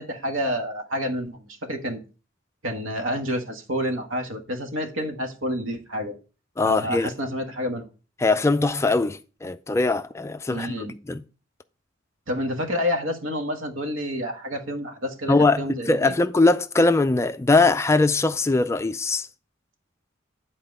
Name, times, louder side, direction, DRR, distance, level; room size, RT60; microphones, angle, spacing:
voice 1, 0.0-2.0 2.6-6.1 6.6-7.9 10.5-10.9 12.3-16.1, equal, 75° right, 1.6 m, -29 dB
voice 2, 6.6-7.1 8.2-11.2 15.3-19.3, left 3 dB, 15° left, 0.3 m, -21 dB
10.0 x 4.3 x 5.3 m
head